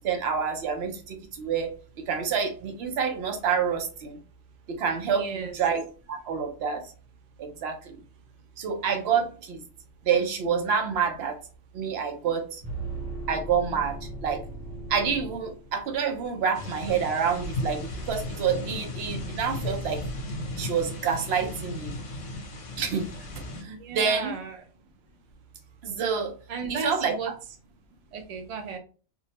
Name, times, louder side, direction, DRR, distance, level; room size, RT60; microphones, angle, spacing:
voice 1, 0.0-1.7 2.1-4.1 4.8-5.8 6.1-6.8 7.4-8.0 8.6-9.6 10.1-11.3 11.7-12.5 13.3-14.0 14.2-14.4 14.9-20.0 20.6-21.9 22.8-23.1 23.6-24.3 25.8-26.3 26.8-27.1, right 6 dB, 60° right, 4 dB, 0.8 m, -27 dB
voice 2, 5.1-5.6 23.7-24.7 26.5-27.3 28.1-28.8, right 5 dB, 80° right, 3 dB, 0.3 m, -35 dB
sound 1, 12.6-16.1, right 2 dB, 30° right, 1.2 m, -37 dB
sound 2, 16.5-23.6, left 1 dB, 70° left, 1.0 m, -35 dB
2.6 x 2.0 x 2.8 m, 0.37 s
omnidirectional pair, 1.3 m